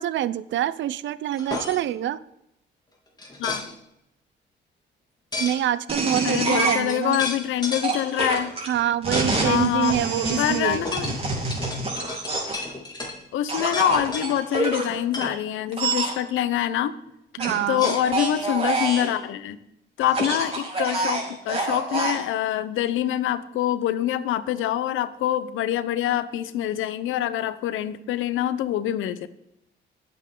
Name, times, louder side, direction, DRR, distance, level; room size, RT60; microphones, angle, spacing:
voice 1, 0.0-2.2 5.4-7.2 8.7-10.8 17.4-18.0, right 11 dB, 70° right, 18 dB, 0.6 m, -26 dB
sound 1, 1.4-1.8 3.2-3.6 5.3-5.6 6.3-6.4 6.6-7.9 9.1-9.3 9.6-9.7 10.8-13.2 13.6-14.4 14.9-15.4 17.7-18.6, left 2 dB, 20° left, 3.8 m, -33 dB
sound 2, 5.9-7.2 7.8-12.6 13.5-14.9 15.7-16.1 17.4-19.1 20.0-22.2, right 2 dB, 30° right, 4.0 m, -26 dB
voice 2, 6.2-8.5 9.4-10.0 10.4-11.2 13.3-16.9 17.7-19.6 20.0-29.3, left 11 dB, 85° left, 14 dB, 0.8 m, -25 dB
19.5 x 8.1 x 3.9 m, 0.82 s
cardioid pair, 90°, 20 cm